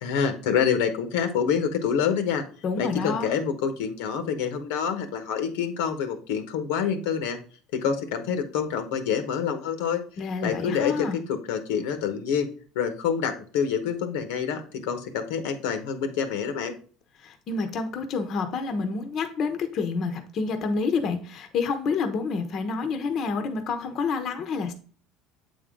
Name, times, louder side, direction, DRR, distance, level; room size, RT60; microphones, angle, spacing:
voice 1, 0.0-2.4 2.8-7.4 7.7-10.0 10.4-12.5 12.7-16.7, left 7 dB, 90° left, 8 dB, 1.0 m, -27 dB
voice 2, 2.6-3.3 10.2-11.2 17.2-24.7, left 4 dB, 45° left, 7 dB, 0.8 m, -28 dB
7.9 x 3.7 x 3.6 m, 0.41 s
cardioid pair, 135°, 0 cm